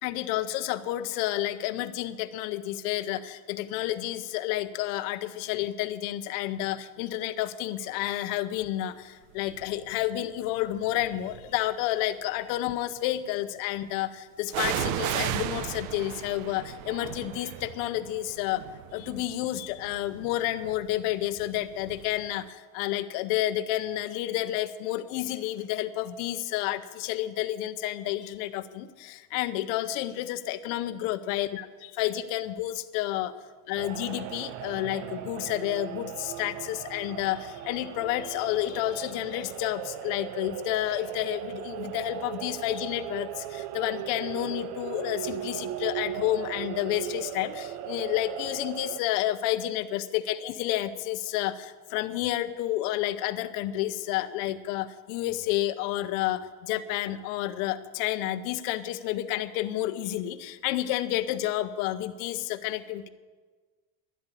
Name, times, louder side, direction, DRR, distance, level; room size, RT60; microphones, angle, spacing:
voice 1, 0.0-18.6 18.9-33.3 33.7-63.1, left 14 dB, 50° left, 9 dB, 0.8 m, -30 dB
sound 1, 9.5-9.9 10.6-11.6 14.5-22.1 22.4-22.5, right 11 dB, 70° right, 0.8 m, -35 dB
sound 2, 33.7-49.0, right 12 dB, 45° right, 0.5 m, -38 dB
11.5 x 7.8 x 9.8 m, 1.4 s
cardioid pair, 165°, 40 cm